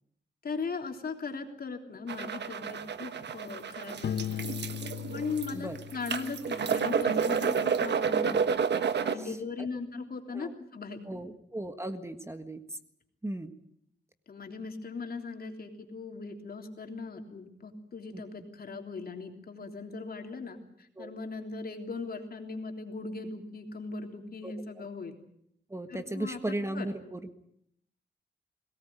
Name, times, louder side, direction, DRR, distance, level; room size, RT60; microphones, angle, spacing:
voice 1, 0.4-4.4 5.1-8.5 9.0-11.2 14.3-20.6 21.0-25.2 25.9-26.4 26.7-26.9, left 4 dB, 55° left, 4 dB, 3.4 m, -39 dB
sound 1, 2.1-9.1, right 6 dB, 75° right, 1.4 m, -30 dB
Piano, 4.0-6.8, left 9 dB, 75° left, 1.1 m, -37 dB
voice 2, 11.0-12.8 13.2-13.5 18.1-18.2 21.0-21.1 24.4-24.9 25.7-27.3, right 1 dB, 15° right, 9 dB, 1.6 m, -37 dB
22.0 x 18.5 x 9.3 m, 0.72 s
wide cardioid pair, 95°, 18 cm